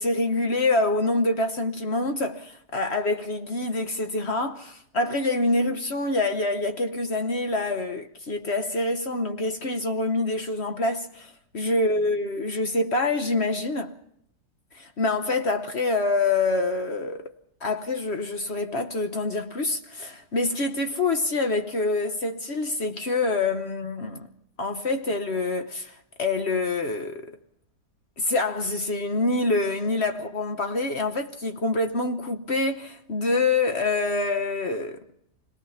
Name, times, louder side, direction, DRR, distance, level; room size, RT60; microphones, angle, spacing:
voice 1, 0.0-14.0 14.7-17.3 17.6-24.3 24.6-27.3 28.2-35.0, left 2 dB, 45° left, 1.1 m, -26 dB
26.0 x 19.0 x 5.7 m
omnidirectional pair, 1.8 m